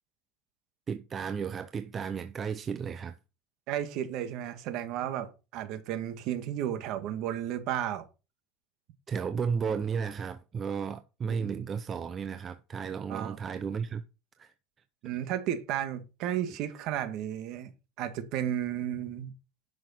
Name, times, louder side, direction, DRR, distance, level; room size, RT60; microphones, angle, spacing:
voice 1, 0.9-3.1 9.1-14.0 14.4-14.5, right 6 dB, 25° right, 0.6 m, -33 dB
voice 2, 3.7-8.0 11.4-11.6 13.1-13.4 15.0-17.7 18.0-19.3, right 11 dB, 55° right, 1.7 m, -33 dB
10.5 x 6.3 x 4.3 m
supercardioid pair, 130°, 0 cm